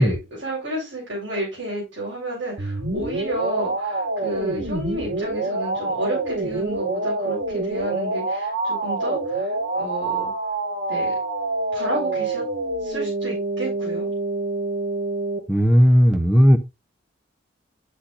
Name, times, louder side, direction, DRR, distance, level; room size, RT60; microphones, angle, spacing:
voice 1, 0.0-10.3 10.9-11.1 11.7-12.4 12.8-14.1, right 1 dB, 75° right, 7.0 m, -31 dB
sound 1, 2.6-15.4, right 2 dB, 50° right, 1.8 m, -26 dB
voice 2, 15.5-16.6, equal, 5° right, 0.8 m, -15 dB
9.9 x 8.7 x 2.6 m
head